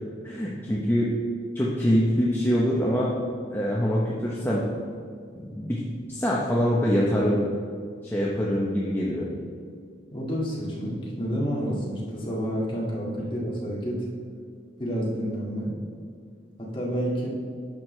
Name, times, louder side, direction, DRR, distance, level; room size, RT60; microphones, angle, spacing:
voice 1, 0.2-1.1 1.5-3.1 3.5-4.6 5.3-5.8 6.1-7.5 8.0-9.3, equal, 10° left, -5 dB, 0.8 m, -24 dB
voice 2, 10.1-14.0 14.8-15.8 16.6-17.3, equal, 25° left, -5 dB, 1.9 m, -29 dB
10.5 x 6.3 x 3.2 m, 2.2 s
head